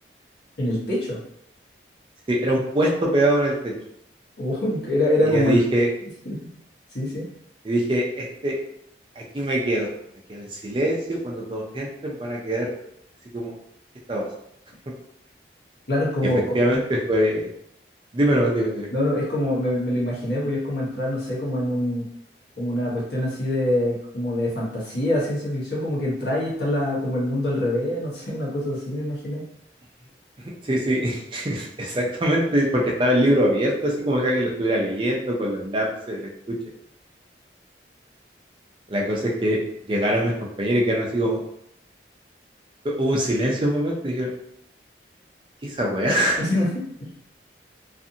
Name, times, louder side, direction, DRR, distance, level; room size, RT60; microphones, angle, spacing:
voice 1, 0.6-1.2 4.4-5.6 6.2-6.4 6.9-7.3 15.9-16.6 18.9-22.0 22.6-29.4 46.4-46.7 47.0-47.1, left 1 dB, 70° left, -5 dB, 1.0 m, -24 dB
voice 2, 2.3-3.7 5.2-5.9 7.6-8.6 9.2-9.9 10.3-12.7 13.3-13.5 14.1-14.3 16.5-17.5 18.1-18.9 30.6-36.6 38.9-39.6 39.9-40.3 40.6-41.4 43.0-44.3 45.6-46.4, right 1 dB, 30° right, -2 dB, 0.4 m, -23 dB
2.5 x 2.5 x 2.6 m, 0.74 s
head